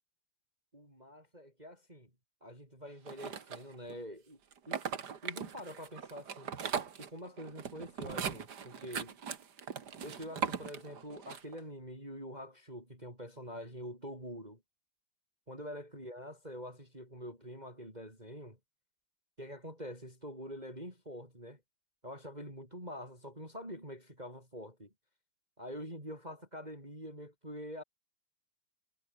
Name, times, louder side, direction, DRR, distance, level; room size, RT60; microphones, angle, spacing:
voice 1, 0.7-2.1 2.4-4.4 4.7-4.8 5.2-6.6 7.0-9.2 10.0-14.6 15.5-18.6 19.4-21.6 22.0-24.9 25.6-27.8, equal, 10° right, 7.6 m, -46 dB
sound 1, 3.1-3.9 4.5-11.6, right 7 dB, 50° right, 1.2 m, -40 dB
omnidirectional pair, 4.4 m